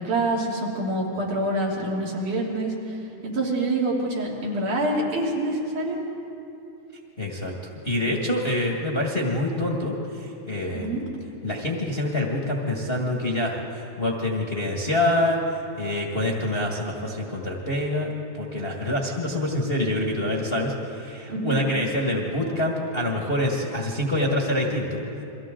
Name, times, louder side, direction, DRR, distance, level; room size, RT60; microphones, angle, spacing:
voice 1, 0.0-6.0 10.7-11.0 21.3-21.6, right 1 dB, 80° right, -4 dB, 4.4 m, -26 dB
voice 2, 7.2-7.5 7.8-11.0 11.4-15.4 15.8-18.1 18.4-25.0, left 1 dB, 25° left, -1 dB, 1.3 m, -26 dB
30.0 x 23.5 x 3.8 m, 2.8 s
omnidirectional pair, 3.4 m